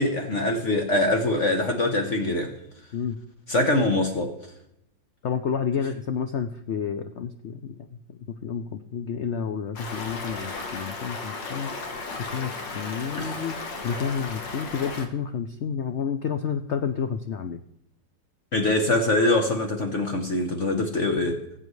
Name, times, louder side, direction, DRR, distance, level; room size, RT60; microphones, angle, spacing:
voice 1, 0.0-2.5 3.5-4.4 13.1-13.3 18.5-21.4, left 2 dB, 45° left, 4 dB, 1.2 m, -23 dB
voice 2, 5.2-8.0 8.3-11.7 12.2-17.6, left 7 dB, 85° left, 7 dB, 0.6 m, -30 dB
Stream, 9.8-15.1, left 3 dB, 70° left, 2.0 m, -35 dB
20.0 x 8.0 x 3.2 m, 0.82 s
omnidirectional pair, 2.0 m